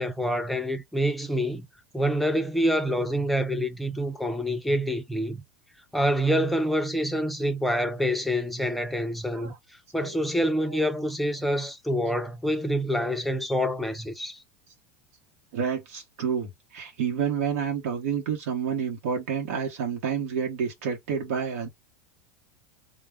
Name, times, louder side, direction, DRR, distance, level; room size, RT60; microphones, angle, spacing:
voice 1, 0.0-1.7 1.9-5.4 5.9-9.5 9.9-14.4, equal, ahead, 0.4 m, -26 dB
voice 2, 15.5-21.7, right 7 dB, 80° right, 0.9 m, -29 dB
2.2 x 2.0 x 3.4 m
supercardioid pair, 150°, 8 cm